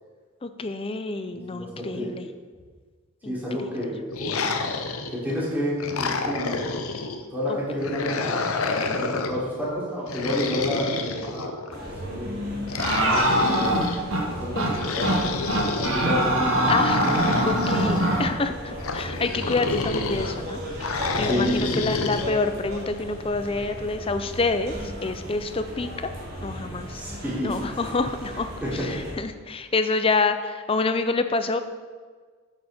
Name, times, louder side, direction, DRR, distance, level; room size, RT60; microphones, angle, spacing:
voice 1, 0.4-2.3 3.2-3.3 3.6-3.7 7.5-7.6 8.7-9.0 14.5-14.9 16.7-17.0 17.5-25.9 26.4-27.0 27.4-31.6, left 3 dB, 25° left, 9 dB, 0.5 m, -27 dB
voice 2, 1.5-2.3 3.2-3.9 4.2-4.5 5.1-6.6 7.3-8.4 8.9-12.4 12.9-13.8 14.2-15.3 15.8-16.4 16.6-16.7 21.2-21.8 26.9-27.5 28.6-28.9, equal, 10° right, -7 dB, 3.1 m, -30 dB
sound 1, 4.1-5.3 5.8-7.2 7.8-9.4 10.1-11.8 12.7-14.0 14.7-16.1 16.8-18.2 18.8-20.3 20.8-22.3, left 4 dB, 85° left, 0.8 m, -29 dB
sound 2, 11.7-29.1, equal, 45° right, 2.7 m, -36 dB
sound 3, 12.8-14.2 14.6-14.7 15.0-15.2 15.5-18.2, right 1 dB, 70° right, 1.6 m, -22 dB
9.4 x 7.5 x 4.3 m, 1.5 s
head